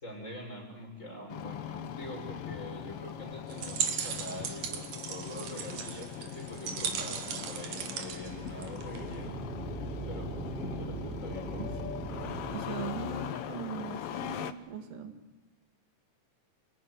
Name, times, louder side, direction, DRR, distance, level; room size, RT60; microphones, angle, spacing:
voice 1, 0.0-9.3 10.0-11.6, equal, 20° left, 0 dB, 6.1 m, -44 dB
Engine starting, 1.3-14.5, left 9 dB, 70° left, 1.5 m, -41 dB
sound 1, 3.5-9.1, right 7 dB, 70° right, 3.1 m, -37 dB
sound 2, 8.0-12.6, right 3 dB, ahead, 5.8 m, -40 dB
voice 2, 12.5-15.2, right 8 dB, 90° right, 6 dB, 4.0 m, -40 dB
27.0 x 18.0 x 9.4 m, 1.1 s
omnidirectional pair, 3.9 m